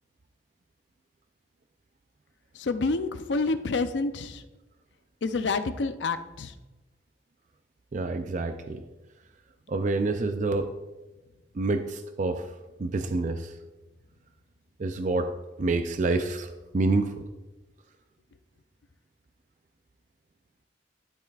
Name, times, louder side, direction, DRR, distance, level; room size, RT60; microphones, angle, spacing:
voice 1, 2.6-4.4 5.2-6.5, left 3 dB, 80° left, 10 dB, 0.5 m, -28 dB
voice 2, 7.9-8.8 9.7-10.7 11.5-12.5 12.8-13.5 14.8-15.3 15.6-16.5 16.7-17.2, right 3 dB, 45° right, 8 dB, 0.4 m, -27 dB
12.0 x 7.4 x 2.4 m, 1.1 s
head